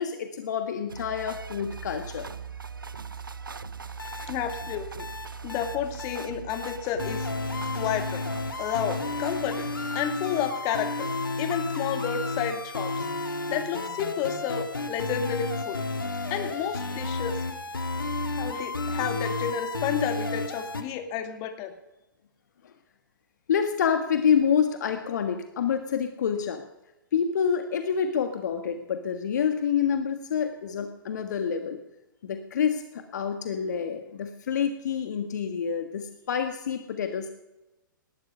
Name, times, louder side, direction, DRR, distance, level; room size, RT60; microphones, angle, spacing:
voice 1, 0.0-2.3 23.5-26.6 27.1-31.8 32.2-37.3, left 7 dB, 55° left, 6 dB, 1.6 m, -27 dB
sound 1, 0.9-10.0, right 6 dB, 80° right, 0.8 m, -41 dB
sound 2, 4.0-20.8, left 3 dB, 80° left, 1.8 m, -32 dB
voice 2, 4.3-5.0 5.4-7.3 7.7-8.3 8.6-9.7 9.9-11.1 11.4-13.1 13.5-15.8 16.3-17.4 18.4-21.7, left 8 dB, 30° left, 7 dB, 2.1 m, -31 dB
19.0 x 13.0 x 5.5 m, 0.96 s
figure-of-eight pair, 115°, 11 cm